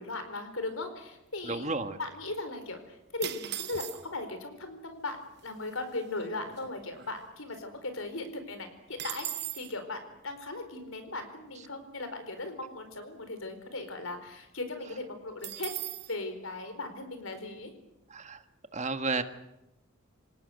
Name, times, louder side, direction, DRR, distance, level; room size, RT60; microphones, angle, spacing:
voice 1, 0.0-15.7 16.1-17.7, left 2 dB, 70° left, 8 dB, 4.6 m, -38 dB
voice 2, 1.4-2.0 18.1-18.4 18.7-19.2, right 3 dB, 30° right, 9 dB, 1.5 m, -32 dB
sound 1, 3.2-4.3 5.1-5.2 5.4-5.7 6.2-7.6 8.0-8.1 8.4-9.8 15.4-16.2, right 13 dB, 50° right, 1.0 m, -39 dB
26.5 x 18.5 x 8.1 m, 0.87 s
head